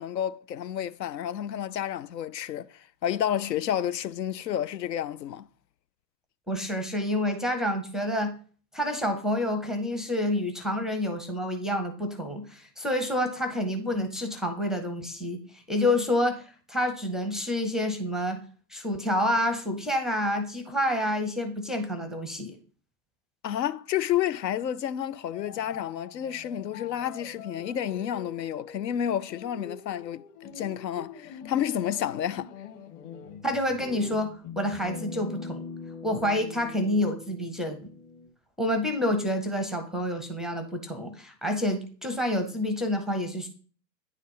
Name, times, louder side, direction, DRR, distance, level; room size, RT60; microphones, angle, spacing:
voice 1, 0.0-5.5 23.4-32.5, left 10 dB, 80° left, 0.6 m, -30 dB
voice 2, 6.5-8.3 8.7-18.4 18.7-22.6 33.4-35.6 36.0-37.8 38.6-43.5, left 1 dB, ahead, 0.5 m, -28 dB
sound 1, 25.3-38.3, left 5 dB, 45° left, 2.0 m, -43 dB
9.5 x 4.1 x 5.4 m
figure-of-eight pair, 100°, 50 cm